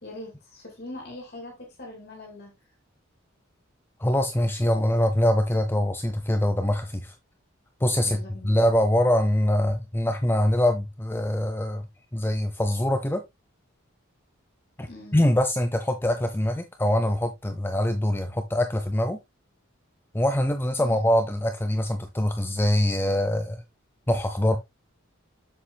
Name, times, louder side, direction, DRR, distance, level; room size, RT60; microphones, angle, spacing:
voice 1, 0.0-2.5 8.0-8.6 14.8-15.2 20.8-21.1, left 2 dB, 50° left, 2.8 m, -42 dB
voice 2, 4.0-7.1 7.8-11.8 12.1-13.2 14.8-14.9 15.1-19.2 20.1-23.6 24.1-24.6, left 1 dB, 10° left, 0.5 m, -24 dB
7.3 x 7.1 x 2.2 m
head